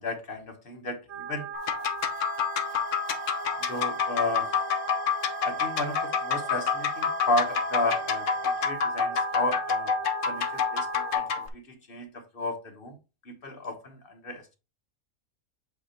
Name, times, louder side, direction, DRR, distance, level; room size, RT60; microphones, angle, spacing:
voice 1, 0.0-1.5 3.2-4.5 5.4-9.9 10.2-13.0 13.2-14.6, left 2 dB, 45° left, 1.3 m, -33 dB
sound 1, 1.1-11.2, right 7 dB, 60° right, 0.9 m, -38 dB
sound 2, 1.5-11.5, left 6 dB, 65° left, 1.2 m, -28 dB
sound 3, 2.1-8.7, left 7 dB, 80° left, 1.5 m, -47 dB
7.6 x 3.0 x 4.3 m
omnidirectional pair, 1.4 m